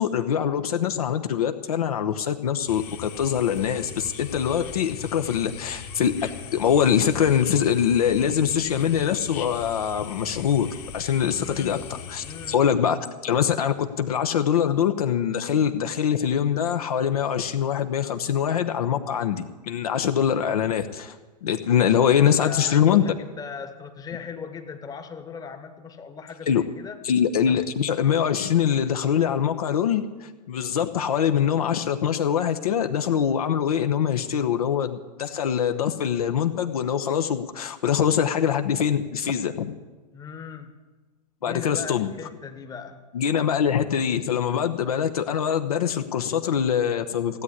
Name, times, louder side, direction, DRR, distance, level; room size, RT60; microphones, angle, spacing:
voice 1, 0.0-10.7 10.9-11.8 12.1-21.2 21.4-23.0 26.5-26.6 27.0-39.7 41.4-42.1 43.1-47.4, left 8 dB, 60° left, 8 dB, 1.0 m, -23 dB
sound 1, 2.7-12.6, left 7 dB, 40° left, 1.7 m, -39 dB
voice 2, 11.2-12.8 21.8-27.0 27.5-27.6 40.1-40.9 41.4-43.1, left 6 dB, 15° left, 8 dB, 1.3 m, -39 dB
16.0 x 8.4 x 9.8 m, 1.2 s
figure-of-eight pair, 100°, 21 cm